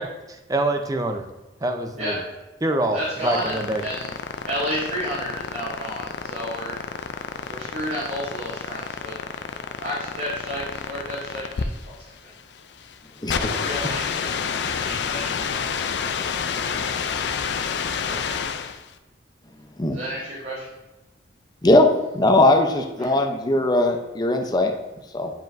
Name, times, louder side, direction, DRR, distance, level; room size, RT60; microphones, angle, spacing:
voice 1, 0.3-1.2 1.6-2.1 2.6-3.0 3.2-3.8, right 1 dB, 20° right, 5 dB, 0.6 m, -24 dB
voice 2, 2.9-4.1 4.4-6.7 7.5-9.2 9.8-12.3 13.3-15.9 16.6-17.5 18.1-18.4 19.9-20.6 23.0-23.2, equal, 65° right, -10 dB, 2.2 m, -32 dB
sound 1, 3.0-18.9, left 6 dB, 65° left, 0.4 m, -29 dB
voice 3, 22.1-24.7 25.1-25.3, left 1 dB, 20° left, 4 dB, 0.6 m, -19 dB
9.2 x 5.1 x 2.6 m, 1.1 s
head